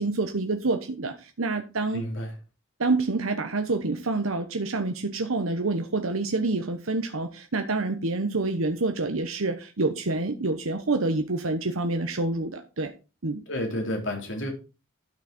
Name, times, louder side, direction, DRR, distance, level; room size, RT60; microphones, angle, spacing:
voice 1, 0.0-2.0 2.8-12.9 13.2-13.4, right 3 dB, 80° right, 1.0 m, -27 dB
voice 2, 1.9-2.4 13.5-14.5, left 1 dB, 65° left, 3.5 m, -30 dB
12.0 x 6.4 x 4.3 m
head